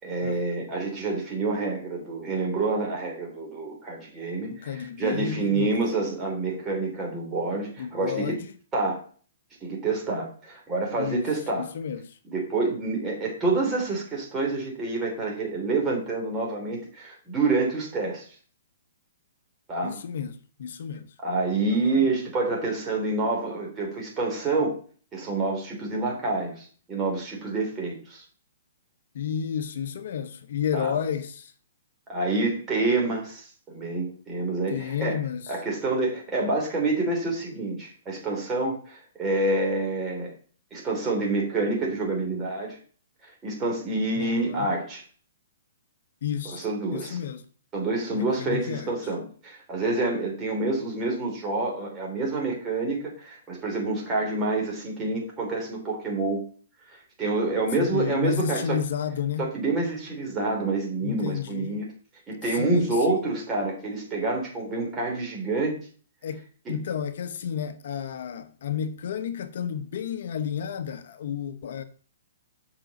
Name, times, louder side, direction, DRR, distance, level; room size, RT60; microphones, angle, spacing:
voice 1, 0.0-8.3 8.7-9.0 9.6-11.7 12.2-18.3 19.7-20.0 21.2-24.7 25.1-28.2 30.7-30.9 32.1-35.2 35.5-40.3 40.7-42.8 43.4-45.0 46.4-47.2 47.7-56.4 56.9-58.8 59.4-61.8 62.3-65.8 66.6-66.7, right 3 dB, 15° right, 3.2 m, -27 dB
voice 2, 4.5-5.7 7.8-8.5 11.0-11.2 11.6-12.2 19.8-21.1 21.7-22.0 29.1-31.5 34.7-35.5 44.2-44.7 46.2-46.6 46.9-47.4 48.1-48.9 57.8-59.5 61.0-61.8 62.5-63.2 66.2-71.8, left 8 dB, 60° left, 0.8 m, -31 dB
7.7 x 5.9 x 5.2 m
hypercardioid pair, 155°, 0 cm